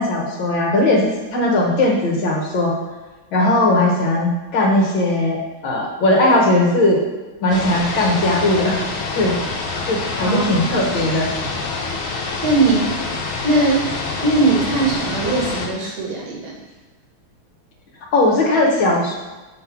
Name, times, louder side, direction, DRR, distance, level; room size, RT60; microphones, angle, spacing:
voice 1, 0.0-2.7 3.3-7.0 7.4-8.8 9.2-9.4 9.9-11.3 18.1-19.1, left 1 dB, 75° left, -1 dB, 2.0 m, -18 dB
sound 1, 7.5-15.7, left 3 dB, 90° left, 1.9 m, -26 dB
voice 2, 10.2-10.7 11.4-11.5 12.4-12.9 13.4-13.9 14.2-16.6, right 3 dB, 55° right, -3 dB, 1.7 m, -20 dB
6.5 x 3.6 x 5.9 m, 1.2 s
omnidirectional pair, 2.2 m